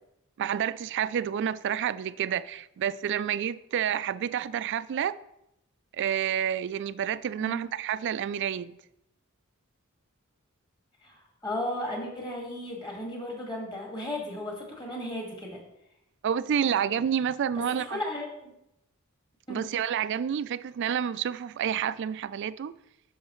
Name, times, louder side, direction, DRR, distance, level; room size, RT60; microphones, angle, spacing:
voice 1, 0.4-5.2 5.9-8.8 16.2-18.0 19.5-22.7, right 9 dB, 55° right, 0.3 m, -29 dB
voice 2, 11.0-15.6 17.7-18.5 19.5-19.6, left 1 dB, 20° left, 1.9 m, -35 dB
10.5 x 6.2 x 3.1 m
head